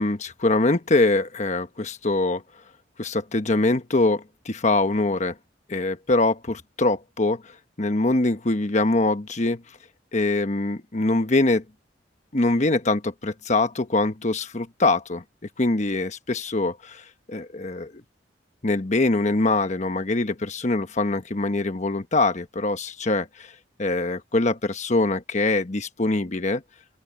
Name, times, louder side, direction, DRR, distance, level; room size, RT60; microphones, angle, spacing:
voice 1, 0.0-2.4 3.0-5.3 5.7-7.4 7.8-9.6 10.1-11.6 12.3-15.2 15.6-17.9 18.6-23.5 23.8-26.6, left 2 dB, 40° left, 1.1 m, -23 dB
open air
head